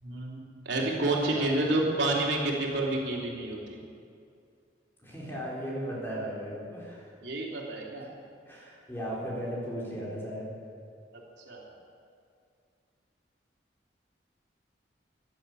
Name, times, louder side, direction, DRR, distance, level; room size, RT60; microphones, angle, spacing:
voice 1, 0.0-3.8 7.2-8.1 11.5-11.7, right 2 dB, 75° right, -2 dB, 3.1 m, -29 dB
voice 2, 5.0-7.1 8.5-10.5, equal, 15° left, -6 dB, 4.3 m, -36 dB
15.5 x 11.0 x 8.4 m, 2.3 s
head